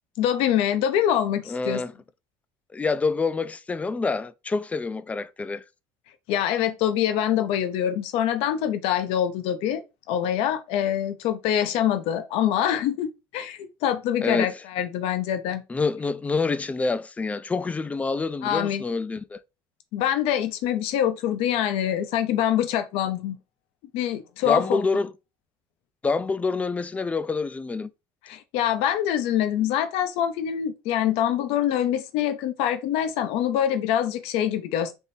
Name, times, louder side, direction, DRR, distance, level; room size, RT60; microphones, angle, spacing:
voice 1, 0.2-1.8 6.3-9.8 10.1-15.6 18.4-18.8 19.9-23.4 23.9-25.0 28.2-34.9, left 10 dB, 70° left, 0.7 m, -25 dB
voice 2, 1.5-1.9 2.7-5.6 14.2-14.5 15.7-19.4 24.4-25.1 26.0-27.9, left 4 dB, 15° left, 0.3 m, -27 dB
3.6 x 2.7 x 4.2 m
cardioid pair, 120°, 10 cm